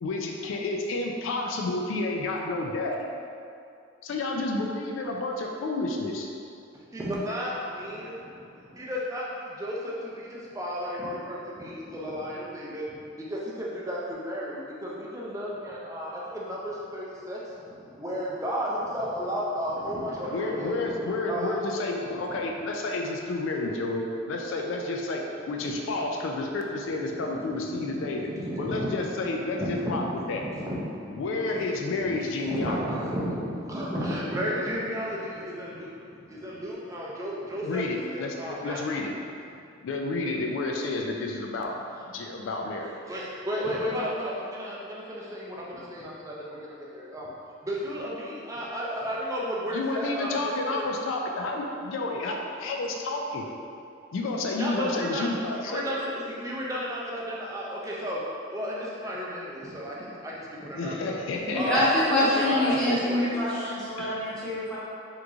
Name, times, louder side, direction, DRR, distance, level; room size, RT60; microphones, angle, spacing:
voice 1, 0.0-3.0 4.0-6.3 20.3-28.3 28.6-30.0 30.3-30.4 31.1-32.8 37.6-39.1 39.8-41.7 42.1-42.9 49.7-53.5 54.1-55.8 60.8-63.1, left 2 dB, 70° left, 1 dB, 0.3 m, -30 dB
voice 2, 6.9-13.0 13.3-20.9 21.3-21.6 22.1-22.6 26.0-26.1 27.0-31.6 32.0-39.0 42.6-42.7 43.1-47.3 47.6-50.4 50.7-50.9 54.6-55.3 55.6-58.2 58.5-61.1 61.5-61.9 62.3-63.4, equal, 15° right, -5 dB, 0.4 m, -34 dB
voice 3, 61.4-64.8, left 1 dB, 5° left, -12 dB, 0.8 m, -25 dB
3.7 x 3.0 x 2.4 m, 2.5 s
head